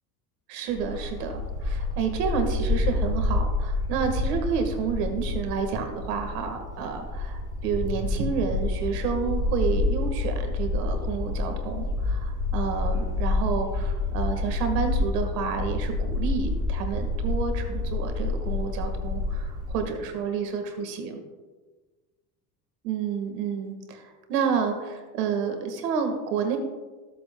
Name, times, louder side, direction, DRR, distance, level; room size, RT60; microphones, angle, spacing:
voice 1, 0.5-21.2 22.8-26.6, right 6 dB, 85° right, 6 dB, 1.7 m, -30 dB
Bark, 0.7-19.8, left 2 dB, 10° right, 3.1 m, -28 dB
14.5 x 7.5 x 2.2 m, 1.3 s
supercardioid pair, 95°, 47 cm